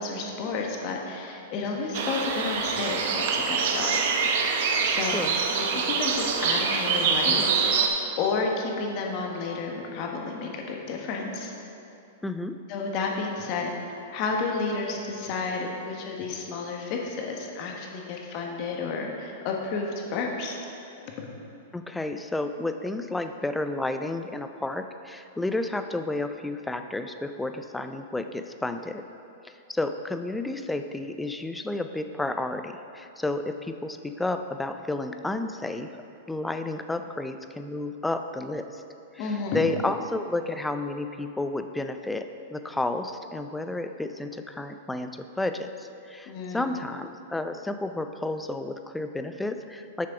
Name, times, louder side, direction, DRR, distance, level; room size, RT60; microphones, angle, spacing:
voice 1, 0.0-4.0 4.8-5.2 5.6-7.7 8.2-11.5 12.7-13.7 14.1-20.6 21.2-21.3 39.2-39.6 46.3-46.6, left 4 dB, 45° left, 1 dB, 1.3 m, -31 dB
sound 1, 1.9-7.9, right 5 dB, 60° right, 0.7 m, -25 dB
voice 2, 12.2-12.6 21.7-29.1 29.4-35.9 36.3-38.8 39.1-50.1, left 2 dB, 5° left, 8 dB, 0.4 m, -31 dB
6.8 x 6.5 x 5.0 m, 2.7 s
hypercardioid pair, 110°, 0 cm